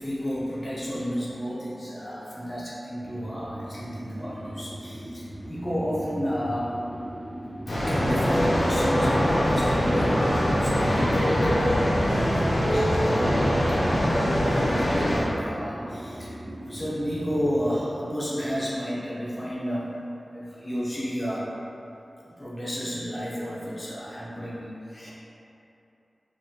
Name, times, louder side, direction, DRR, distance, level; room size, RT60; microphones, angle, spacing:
voice 1, 0.0-6.8 7.7-11.5 11.9-12.9 13.7-13.8 14.3-16.3 16.7-19.9 20.3-21.5 22.3-25.1, equal, 25° left, -7 dB, 0.8 m, -32 dB
sound 1, 3.0-17.8, right 1 dB, 30° right, 0.4 m, -38 dB
sound 2, 7.7-15.2, equal, 90° left, 0.7 m, -23 dB
4.0 x 2.5 x 2.8 m, 2.9 s
wide cardioid pair, 75°, 0 cm